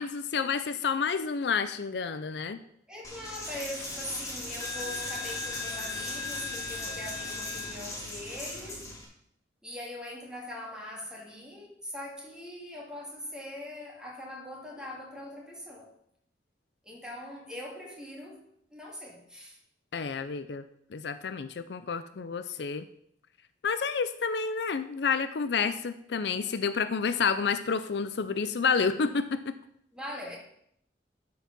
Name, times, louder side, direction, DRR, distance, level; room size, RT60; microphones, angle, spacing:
voice 1, 0.0-2.6 19.9-20.6 20.9-22.8 23.6-29.5, left 5 dB, 70° left, 0.5 m, -29 dB
voice 2, 2.9-8.9 9.6-15.9 16.8-18.4 18.7-19.6 29.9-30.4, left 1 dB, 5° right, 2.3 m, -41 dB
Coin (dropping), 3.0-9.1, left 2 dB, 20° left, 2.4 m, -37 dB
11.5 x 4.7 x 5.3 m
head